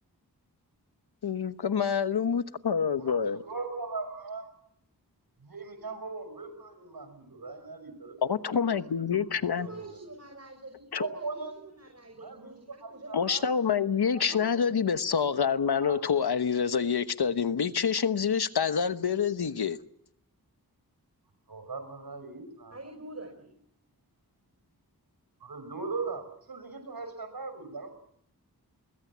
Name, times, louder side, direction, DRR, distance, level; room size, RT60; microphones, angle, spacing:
voice 1, 1.2-3.4 8.2-9.7 10.9-11.0 13.1-19.8, left 7 dB, 90° left, 1.1 m, -27 dB
voice 2, 3.0-4.5 5.4-9.7 11.0-11.5 12.2-13.4 14.1-14.8 15.4-15.5 15.8-16.0 21.5-22.8 25.4-27.9, right 4 dB, 70° right, 5.9 m, -40 dB
voice 3, 9.6-14.7 22.7-23.5, right 2 dB, 40° right, 5.7 m, -47 dB
24.5 x 21.5 x 7.4 m
cardioid pair, 40°, 38 cm